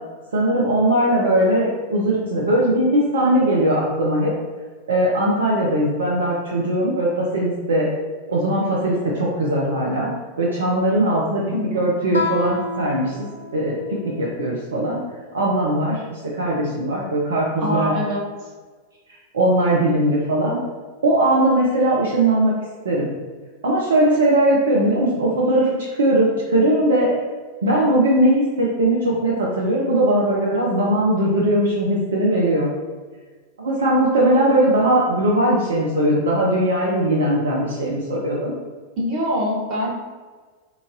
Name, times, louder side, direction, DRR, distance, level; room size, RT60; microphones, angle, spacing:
voice 1, 0.3-4.4 4.9-7.9 8.3-10.1 10.4-11.4 11.7-13.2 13.5-15.0 15.3-17.9 19.3-20.6 21.0-22.6 22.8-23.1 23.6-27.1 27.6-32.7 33.6-38.5, right 1 dB, 65° right, -4 dB, 0.6 m, -19 dB
voice 2, 11.5-11.9 17.6-18.2 39.0-39.9, equal, 40° right, -3 dB, 1.0 m, -24 dB
Guitar, 12.1-14.6, left 3 dB, 70° left, 0.4 m, -30 dB
3.7 x 3.0 x 2.5 m, 1.4 s
figure-of-eight pair, 90°, 0 cm